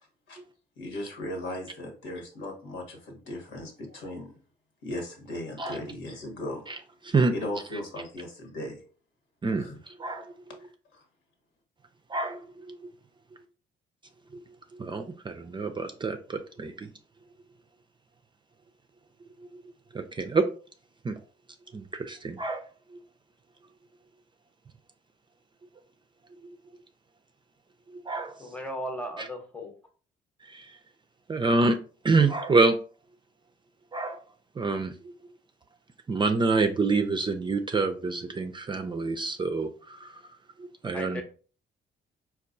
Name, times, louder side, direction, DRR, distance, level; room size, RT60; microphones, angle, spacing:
voice 1, 0.8-4.4 4.8-6.7 7.3-8.8 9.6-9.8 10.9-11.0, left 1 dB, 80° left, 2 dB, 1.2 m, -37 dB
voice 2, 14.8-16.9 19.9-20.5 21.0-21.2 21.7-22.6 28.1-28.3 30.5-30.6 31.3-31.8 32.0-32.8 33.9-34.2 34.6-34.9 36.1-40.1 40.8-41.2, right 3 dB, 25° right, 7 dB, 0.4 m, -26 dB
voice 3, 28.4-29.7 40.9-41.2, equal, 5° left, 4 dB, 0.8 m, -36 dB
4.3 x 2.3 x 2.6 m, 0.39 s
cardioid pair, 90°, 20 cm